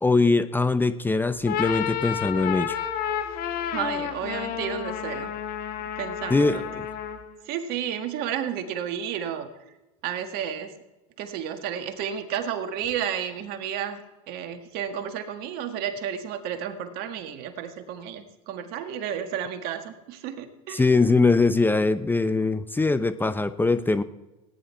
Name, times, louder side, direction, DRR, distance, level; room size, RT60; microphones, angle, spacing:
voice 1, 0.0-2.8 6.3-6.9 20.7-24.0, left 3 dB, 10° left, 12 dB, 0.6 m, -22 dB
sound 1, 1.3-7.3, left 9 dB, 55° left, 1.6 m, -31 dB
voice 2, 3.6-5.3 6.0-6.6 7.5-9.5 10.0-10.8 11.2-20.9, right 9 dB, 60° right, 7 dB, 1.7 m, -32 dB
17.5 x 10.0 x 4.6 m, 1.1 s
hypercardioid pair, 90°, 18 cm